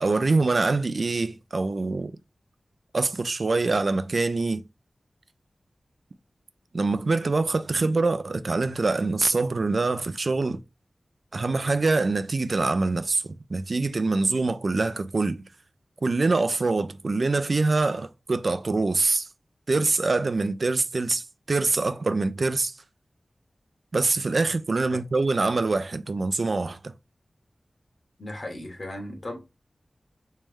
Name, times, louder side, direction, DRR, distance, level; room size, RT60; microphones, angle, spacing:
voice 1, 0.0-2.1 2.9-4.6 6.7-10.6 11.3-15.4 16.0-19.3 19.7-22.7 23.9-26.9, right 3 dB, 65° right, 0.4 m, -24 dB
voice 2, 28.2-29.4, left 1 dB, 60° left, 1.4 m, -37 dB
3.2 x 3.1 x 3.4 m
cardioid pair, 45°, 0 cm